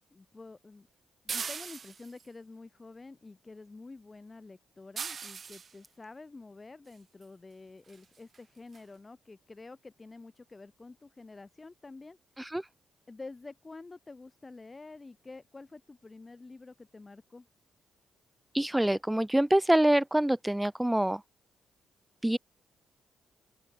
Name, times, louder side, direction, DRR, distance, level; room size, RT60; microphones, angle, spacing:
voice 1, 0.1-0.9 1.2-12.6 13.1-17.5, left 3 dB, 30° left, 4.1 m, -49 dB
sound 1, 1.3-2.3 5.0-5.7 7.2-7.3 7.9-8.0 8.3-8.4 8.7-8.8, right 6 dB, 50° right, 1.5 m, -38 dB
voice 2, 18.5-21.2 22.2-22.4, right 1 dB, 10° right, 1.0 m, -25 dB
open air
hypercardioid pair, 40°, 0 cm